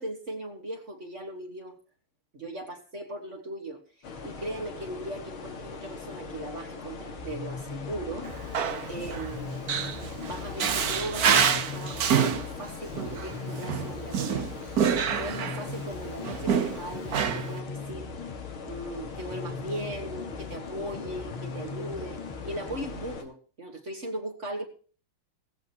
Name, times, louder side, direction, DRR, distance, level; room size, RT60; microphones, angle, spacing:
voice 1, 0.0-1.7 2.3-3.8 4.2-8.3 8.9-9.6 10.2-18.1 18.6-22.2 22.4-24.6, right 1 dB, 35° right, 4 dB, 2.0 m, -38 dB
sound 1, 4.0-23.2, left 5 dB, 80° left, 2.8 m, -40 dB
sound 2, 7.2-23.2, left 4 dB, 50° left, 0.3 m, -41 dB
Male speech man speaking, 8.2-15.8 16.2-17.6, right 7 dB, 55° right, 1.4 m, -27 dB
17.0 x 15.0 x 3.0 m, 0.40 s
omnidirectional pair, 2.3 m